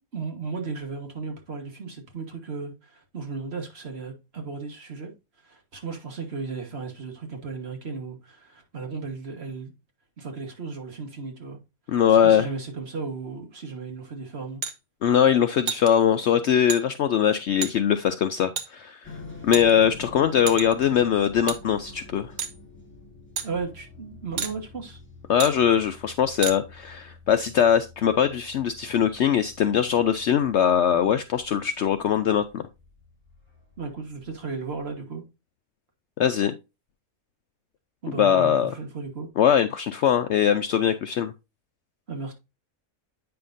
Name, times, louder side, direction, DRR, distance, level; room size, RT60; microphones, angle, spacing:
voice 1, 0.1-5.1 5.4-9.7 10.2-11.6 12.1-14.6 23.4-25.0 33.8-35.2 38.0-39.3 42.1-42.3, right 4 dB, 45° right, 1.7 m, -35 dB
voice 2, 11.9-12.5 15.0-19.2 19.4-22.3 25.3-32.6 36.2-36.5 38.2-38.7 39.4-41.3, left 9 dB, 65° left, 0.7 m, -21 dB
sound 1, 14.6-14.8 15.7-15.9 16.7-16.8 17.6-17.7 18.6-18.7 19.5-20.0 20.5-20.8 21.5-21.6 22.4-22.6 23.4-23.5 24.4-24.5 25.4-25.5 26.4-26.6, right 6 dB, 80° right, 1.4 m, -30 dB
sound 2, 19.0-35.0, left 3 dB, 10° left, 2.2 m, -47 dB
8.7 x 5.7 x 2.6 m
omnidirectional pair, 1.5 m